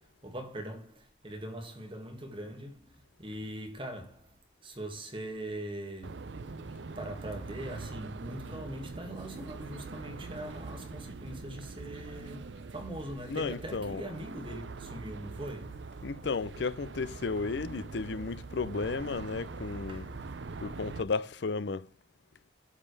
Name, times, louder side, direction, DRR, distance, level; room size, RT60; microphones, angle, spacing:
voice 1, 0.0-6.3 7.0-15.9 19.9-20.3, right 1 dB, 30° right, 2.0 m, -42 dB
sound 1, 6.0-21.0, right 3 dB, 85° right, 0.6 m, -43 dB
voice 2, 13.3-14.1 16.0-20.1 20.6-21.9, left 4 dB, 75° left, 0.5 m, -34 dB
11.0 x 7.6 x 3.3 m
head